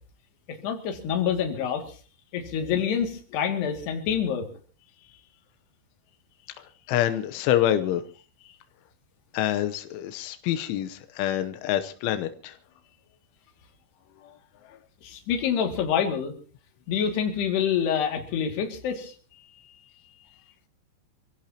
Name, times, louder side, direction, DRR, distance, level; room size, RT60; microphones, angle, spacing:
voice 1, 0.5-2.0 2.3-4.5 15.0-16.3 16.9-19.1, left 8 dB, 65° left, 4.3 m, -27 dB
voice 2, 6.6-8.0 8.4-8.5 9.3-12.6 14.2-14.3 14.6-14.8 19.5-19.8, left 12 dB, 90° left, 3.4 m, -27 dB
27.0 x 16.5 x 2.9 m
omnidirectional pair, 5.3 m